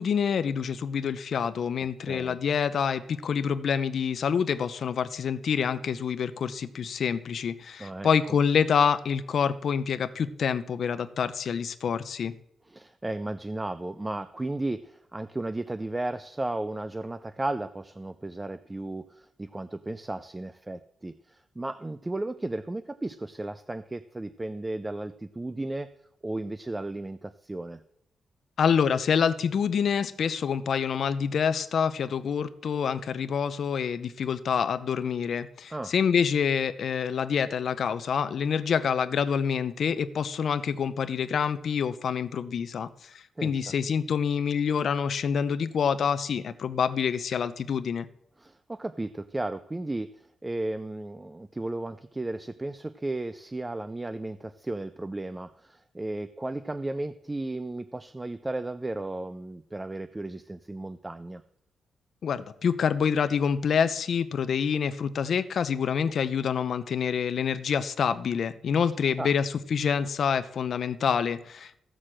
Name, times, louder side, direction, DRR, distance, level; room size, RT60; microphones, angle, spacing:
voice 1, 0.0-12.3 28.6-43.1 43.4-48.1 62.2-71.8, left 7 dB, 50° left, 13 dB, 0.7 m, -27 dB
voice 2, 2.0-2.4 7.8-8.1 12.7-25.9 26.2-27.8 35.7-35.9 43.4-43.6 48.4-61.4 69.0-69.3, right 2 dB, 10° right, 13 dB, 0.4 m, -34 dB
15.0 x 6.5 x 7.6 m, 0.74 s
wide cardioid pair, 175°, 0 cm